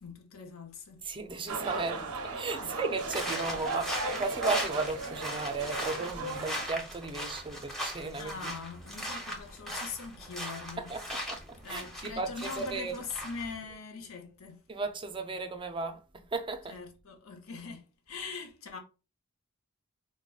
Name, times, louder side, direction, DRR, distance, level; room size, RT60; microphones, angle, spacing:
voice 1, 0.0-1.0 2.6-2.8 8.2-11.2 11.6-14.6 16.7-18.8, left 4 dB, 65° left, 0.8 m, -42 dB
voice 2, 1.0-8.5 10.8-12.9 14.7-16.7, right 3 dB, 25° right, 0.4 m, -35 dB
sound 1, 1.5-6.7, right 3 dB, 90° right, 0.5 m, -36 dB
sound 2, 3.0-13.5, equal, ahead, 0.7 m, -39 dB
4.8 x 2.1 x 2.3 m
head